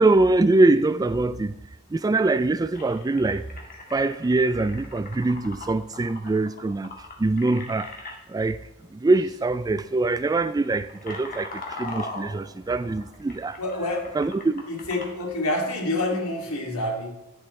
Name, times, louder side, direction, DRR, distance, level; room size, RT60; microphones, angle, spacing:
voice 1, 0.0-1.5 1.9-3.5 3.9-6.9 7.2-7.9 8.3-8.6 8.9-13.6 14.2-14.6, right 2 dB, 15° right, 0.3 m, -23 dB
sound 1, 2.7-8.2 9.2-9.4 9.7-9.9 10.5-15.3, left 2 dB, 40° left, 2.0 m, -40 dB
voice 2, 13.6-14.2 14.7-17.1, left 1 dB, 75° left, 2.5 m, -27 dB
11.5 x 10.5 x 3.2 m
head